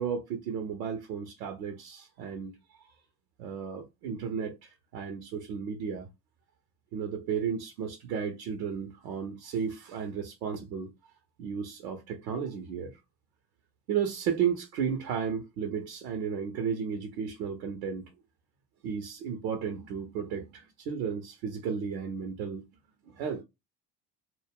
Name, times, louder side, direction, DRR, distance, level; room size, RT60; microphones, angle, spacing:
voice 1, 0.0-2.6 3.4-6.1 6.9-10.9 11.4-13.0 13.9-18.1 18.8-22.6 23.1-23.4, right 7 dB, 80° right, 0.7 m, -33 dB
2.2 x 2.1 x 3.4 m
hypercardioid pair, 55°, 47 cm